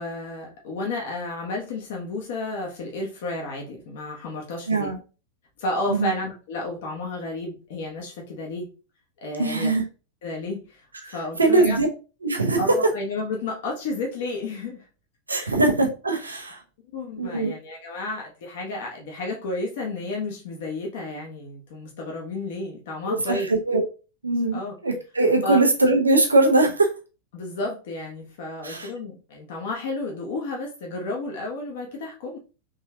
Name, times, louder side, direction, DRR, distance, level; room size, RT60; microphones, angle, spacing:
voice 1, 0.0-4.9 5.6-8.7 9.2-9.7 10.2-11.8 12.6-14.9 15.3-15.5 16.9-23.5 24.3-24.7 25.4-25.6 27.3-32.4, left 2 dB, 55° left, 1.0 m, -32 dB
voice 2, 4.7-5.0 5.9-6.1 9.4-9.8 11.0-11.9 12.2-12.8 15.3-16.6 17.2-17.5 23.1-23.9 24.2-26.9 28.6-28.9, right 2 dB, 80° right, 0.7 m, -21 dB
3.8 x 3.2 x 2.7 m
figure-of-eight pair, 90°, 0 cm